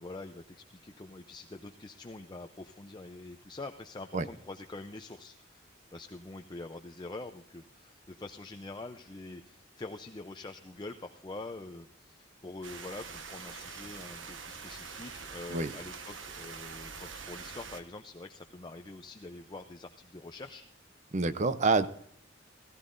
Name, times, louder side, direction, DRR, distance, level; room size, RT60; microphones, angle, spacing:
voice 1, 0.0-20.6, left 2 dB, 25° left, 6 dB, 0.5 m, -45 dB
sound 1, 12.6-17.8, right 5 dB, 80° right, 1.2 m, -44 dB
voice 2, 21.1-21.9, right 3 dB, 40° right, 13 dB, 0.6 m, -27 dB
16.0 x 15.0 x 2.6 m, 0.66 s
head